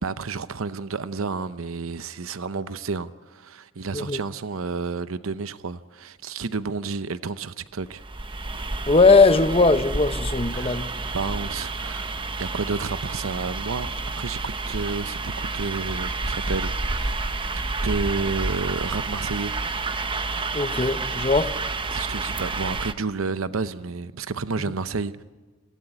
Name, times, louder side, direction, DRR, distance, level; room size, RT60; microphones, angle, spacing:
voice 1, 0.0-8.0 10.5-10.8 11.1-17.1 17.6-19.6 21.9-25.2, right 4 dB, 85° right, 0.7 m, -31 dB
sound 1, 7.9-22.9, right 3 dB, 25° right, 1.0 m, -29 dB
voice 2, 8.9-10.9 20.5-21.5, left 3 dB, 30° left, 1.0 m, -19 dB
27.5 x 18.0 x 9.8 m
head